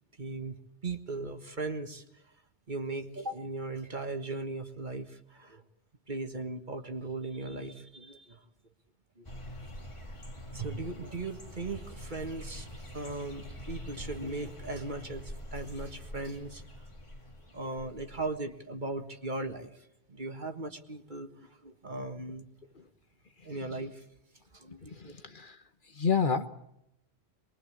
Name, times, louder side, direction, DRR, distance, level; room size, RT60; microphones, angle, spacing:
voice 1, 0.2-0.6 0.8-2.2 2.7-5.6 6.1-8.5 9.2-9.3 10.5-16.6 17.5-22.5 23.4-24.1 24.5-25.1, right 3 dB, 45° right, 6 dB, 1.8 m, -38 dB
sound 1, 9.2-18.4, equal, 30° left, 1.8 m, -45 dB
voice 2, 24.9-25.6 25.9-26.5, left 6 dB, 50° left, 8 dB, 1.4 m, -29 dB
24.5 x 22.0 x 8.5 m, 0.79 s
omnidirectional pair, 1.1 m